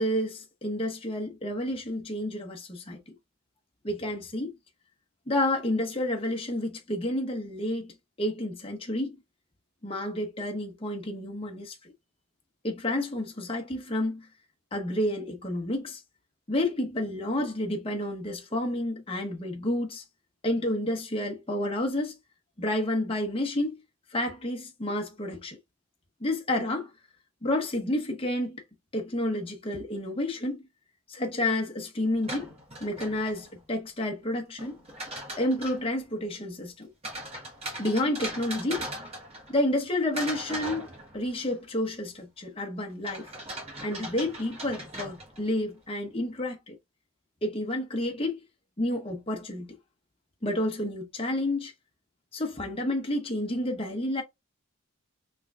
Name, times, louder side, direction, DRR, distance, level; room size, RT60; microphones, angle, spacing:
voice 1, 0.0-3.0 3.8-4.5 5.3-7.9 8.2-9.2 9.8-11.8 12.6-14.3 14.7-16.0 16.5-20.0 20.4-22.2 22.6-23.8 24.1-25.6 26.2-26.9 27.4-28.6 28.9-30.6 31.1-32.5 32.8-34.8 35.4-36.9 37.8-38.8 39.5-40.9 41.1-43.3 43.8-46.8 47.4-48.4 48.8-49.8 50.4-51.7 52.3-54.2, left 1 dB, 25° left, 1.0 m, -30 dB
sound 1, 32.1-33.6 34.6-35.9 37.0-39.8 40.1-41.5 43.0-45.6, right 1 dB, 30° right, 1.3 m, -39 dB
3.8 x 3.2 x 2.4 m
head